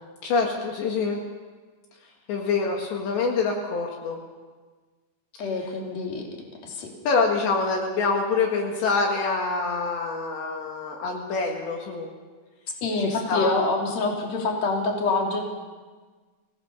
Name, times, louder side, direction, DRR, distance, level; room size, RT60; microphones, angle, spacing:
voice 1, 0.2-1.2 2.3-4.2 7.1-12.1 13.0-13.5, left 4 dB, 70° left, 1 dB, 4.0 m, -26 dB
voice 2, 5.4-6.3 6.6-6.9 12.8-15.4, left 3 dB, 40° left, 0 dB, 4.0 m, -26 dB
24.5 x 17.5 x 7.0 m, 1.4 s
omnidirectional pair, 5.4 m